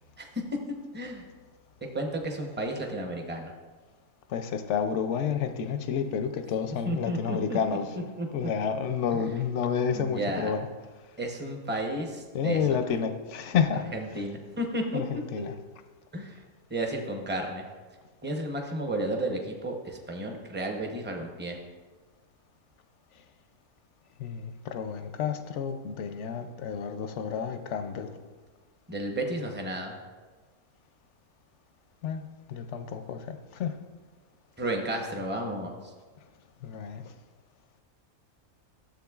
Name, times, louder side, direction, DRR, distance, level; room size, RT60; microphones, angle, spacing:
voice 1, 1.9-3.5 6.9-7.6 8.2-8.5 9.1-9.2 9.9-10.5 11.2-12.6 13.9-15.0 16.1-16.4 16.7-17.6 18.2-21.6 28.9-29.9 34.6-35.8, right 1 dB, 10° right, 2 dB, 0.5 m, -32 dB
voice 2, 4.3-7.9 8.3-10.7 12.3-13.9 14.9-15.5 24.2-28.2 32.0-33.7 36.6-37.1, left 7 dB, 65° left, 9 dB, 0.7 m, -30 dB
13.0 x 7.3 x 2.4 m, 1.4 s
omnidirectional pair, 1.6 m